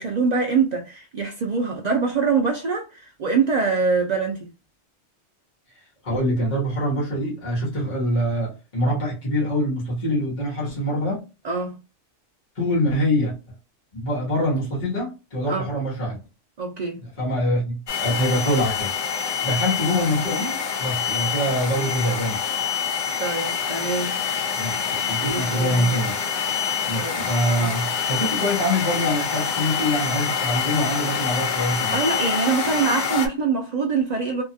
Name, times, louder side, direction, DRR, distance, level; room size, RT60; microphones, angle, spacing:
voice 1, 0.0-4.5 11.4-11.7 15.5-15.7 16.6-17.0 23.2-24.1 25.2-25.9 27.0-27.3 27.5-27.7 31.9-34.4, right 5 dB, 65° right, 0.4 m, -24 dB
voice 2, 6.0-11.2 12.5-13.4 13.9-16.2 17.0-22.5 24.5-26.2 26.9-32.0, equal, 40° left, 1.2 m, -24 dB
sound 1, 17.9-33.3, left 7 dB, 60° left, 0.5 m, -26 dB
2.8 x 2.3 x 2.6 m
omnidirectional pair, 1.3 m